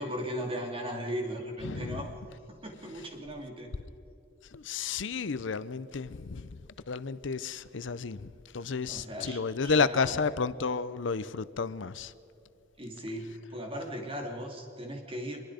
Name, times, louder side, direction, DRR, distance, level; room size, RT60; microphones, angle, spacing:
voice 1, 0.0-2.1 2.5-3.7 8.9-10.2 12.8-15.4, equal, 30° right, 3.1 m, -37 dB
voice 2, 1.6-2.0 4.5-6.6 6.9-12.1, left 5 dB, 70° left, 0.6 m, -31 dB
25.0 x 22.5 x 5.1 m
head